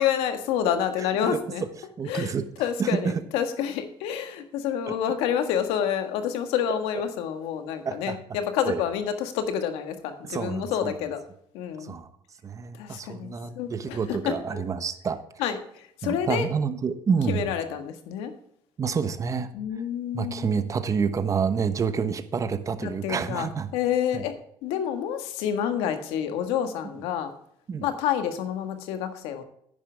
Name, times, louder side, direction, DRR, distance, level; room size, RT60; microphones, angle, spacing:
voice 1, 0.0-1.6 2.1-2.3 2.6-11.2 11.5-11.9 12.8-13.3 13.5-14.6 15.4-16.5 17.3-18.3 19.5-20.6 22.8-24.4 24.6-27.3 27.8-29.4, left 9 dB, 85° left, 8 dB, 1.6 m, -28 dB
voice 2, 1.2-1.7 2.0-2.5 2.8-3.2 4.9-5.0 6.7-6.8 7.8-8.2 8.7-8.8 10.3-10.9 11.8-12.1 12.4-15.2 16.0-17.5 18.8-19.5 20.1-23.7 24.1-24.2 27.7-27.9, right 6 dB, 35° right, 11 dB, 1.1 m, -28 dB
10.0 x 10.0 x 3.4 m, 0.71 s
cardioid pair, 100°, 10 cm